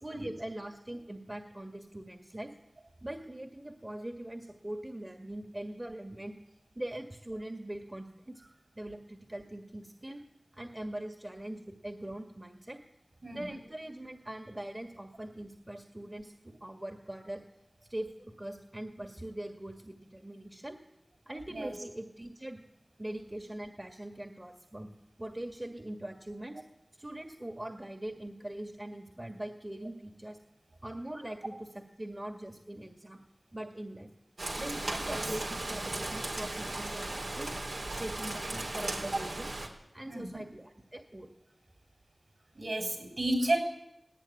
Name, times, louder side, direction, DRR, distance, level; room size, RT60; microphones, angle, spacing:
voice 1, 0.0-2.5 3.0-6.4 6.8-8.4 8.8-10.2 10.5-12.8 13.3-17.4 17.9-20.8 21.3-22.6 23.0-24.9 25.2-26.6 27.0-30.4 30.8-33.2 33.5-34.1 34.6-37.5 37.9-39.5 39.9-41.3, right 1 dB, 25° right, 4 dB, 1.8 m, -42 dB
voice 2, 13.2-13.6 21.5-21.8 35.1-35.3 40.0-40.4 42.5-43.6, right 1 dB, 60° right, 3 dB, 7.4 m, -32 dB
Rain, 34.4-39.7, right 2 dB, 80° right, 4.3 m, -36 dB
19.0 x 19.0 x 9.8 m, 0.86 s
wide cardioid pair, 70°, 0 cm